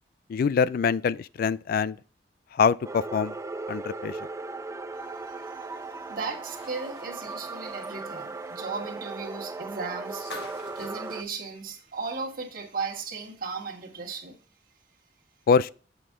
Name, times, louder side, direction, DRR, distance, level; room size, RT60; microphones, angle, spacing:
voice 1, 0.3-2.0 2.6-3.3 3.7-4.2 15.5-15.7, left 6 dB, 55° left, 0.3 m, -24 dB
sound 1, 2.8-11.2, right 3 dB, 15° right, 0.4 m, -37 dB
voice 2, 5.3-10.2 10.7-14.4, right 4 dB, 55° right, 1.7 m, -36 dB
sound 2, 6.3-12.4 12.7-12.8 14.2-14.3, left 2 dB, 80° left, 1.8 m, -49 dB
7.8 x 5.3 x 3.6 m
head